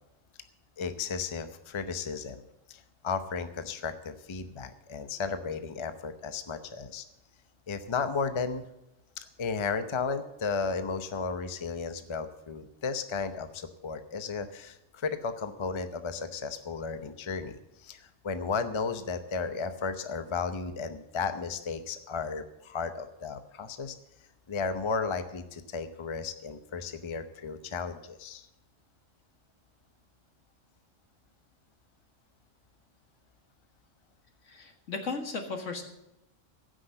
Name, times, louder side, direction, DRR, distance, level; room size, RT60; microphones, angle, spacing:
voice 1, 0.8-2.4 2.7-7.0 7.7-8.7 9.4-24.0 24.5-28.5, left 5 dB, 30° left, 9 dB, 0.7 m, -34 dB
voice 2, 34.5-35.8, left 4 dB, 75° left, 5 dB, 2.0 m, -35 dB
15.5 x 6.3 x 7.6 m, 0.89 s
omnidirectional pair, 1.3 m